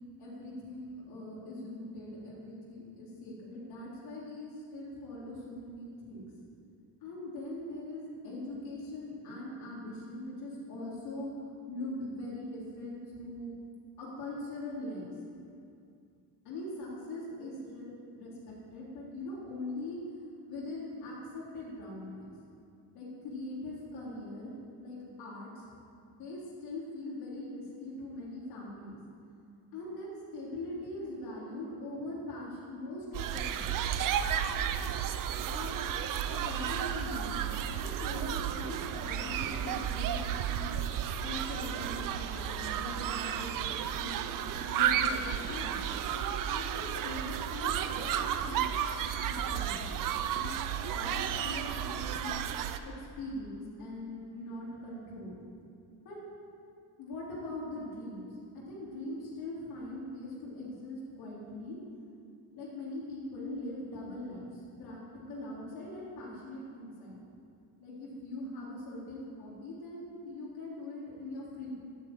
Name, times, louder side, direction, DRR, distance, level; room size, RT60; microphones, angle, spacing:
voice 1, 0.2-6.3 7.0-13.5 14.0-15.1 16.4-20.0 20.5-22.3 22.9-24.5 24.8-25.7 26.1-29.0 29.7-33.7 35.5-35.9 36.4-44.2 44.7-45.8 46.1-48.8 49.2-50.0 50.3-50.6 50.9-52.4 52.8-55.3 56.0-56.2 57.0-58.3 58.5-61.8 62.5-65.0 65.3-67.2 67.8-71.8, left 1 dB, 75° left, -6 dB, 3.7 m, -41 dB
sound 1, 33.1-52.8, right 9 dB, 60° right, 0.7 m, -33 dB
11.5 x 9.1 x 8.0 m, 2.5 s
cardioid pair, 165°, 38 cm